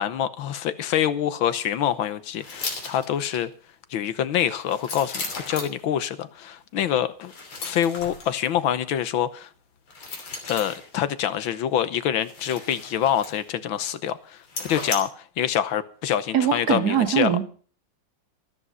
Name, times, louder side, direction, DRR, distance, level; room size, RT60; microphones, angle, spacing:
voice 1, 0.0-3.5 3.9-7.3 7.6-9.5 10.5-17.3, left 10 dB, 75° left, 1.7 m, -26 dB
sound 1, 2.4-3.4 4.4-5.8 7.2-8.3 9.9-10.9 12.2-13.6 13.9-14.0 14.4-15.0, left 3 dB, 90° left, 3.8 m, -35 dB
voice 2, 16.3-17.4, right 9 dB, 50° right, 2.2 m, -22 dB
14.0 x 12.5 x 5.5 m
omnidirectional pair, 2.3 m